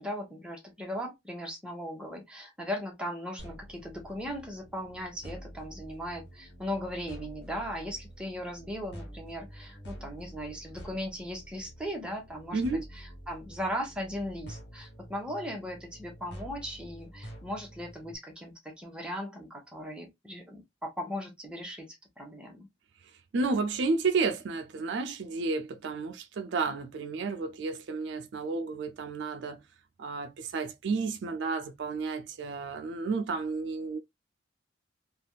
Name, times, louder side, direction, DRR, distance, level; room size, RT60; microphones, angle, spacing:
voice 1, 0.0-12.6 12.9-22.7, equal, 5° right, 0.9 m, -38 dB
sound 1, 3.4-18.1, equal, 60° left, 1.2 m, -48 dB
voice 2, 12.5-12.8 23.3-29.6 30.0-34.0, right 4 dB, 65° right, 0.4 m, -31 dB
3.3 x 2.3 x 2.3 m
head